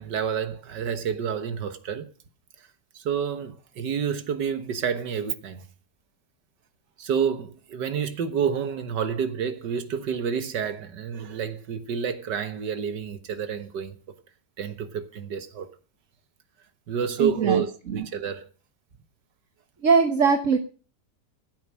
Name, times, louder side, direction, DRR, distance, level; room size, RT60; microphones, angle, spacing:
voice 1, 0.0-2.1 3.0-5.6 7.0-14.0 14.6-15.7 16.9-18.4, right 7 dB, 85° right, 1.9 m, -29 dB
voice 2, 17.2-18.0 19.8-20.6, right 5 dB, 50° right, 1.5 m, -21 dB
14.5 x 8.8 x 6.4 m
omnidirectional pair, 1.8 m